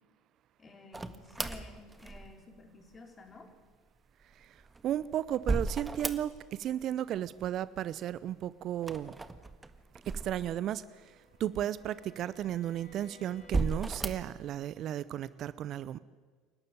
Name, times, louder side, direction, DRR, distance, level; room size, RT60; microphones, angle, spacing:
voice 1, 0.6-3.5, left 3 dB, 30° left, 4 dB, 4.8 m, -52 dB
sound 1, 0.9-2.6 4.4-6.7 6.9-7.6 8.8-10.9 11.5-11.6 12.4-13.0 13.4-14.4, right 3 dB, 15° right, 1.6 m, -36 dB
voice 2, 4.8-9.1 10.1-10.8 11.4-16.0, right 11 dB, 50° right, 18 dB, 0.7 m, -34 dB
Bowed string instrument, 10.3-14.1, left 4 dB, 80° left, 5.9 m, -60 dB
28.5 x 12.0 x 9.8 m, 1.5 s
hypercardioid pair, 70°, 0 cm